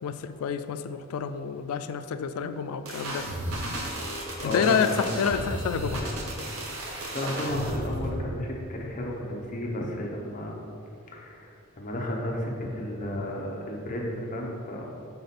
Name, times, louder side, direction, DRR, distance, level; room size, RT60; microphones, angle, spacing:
voice 1, 0.0-3.3 4.4-6.0, left 6 dB, 75° left, 10 dB, 0.3 m, -28 dB
sound 1, 2.9-8.2, right 1 dB, 70° right, 1.0 m, -33 dB
voice 2, 4.4-5.1 7.1-10.5 11.1-14.9, left 1 dB, 35° left, -1 dB, 0.8 m, -33 dB
6.8 x 4.3 x 4.1 m, 2.6 s
head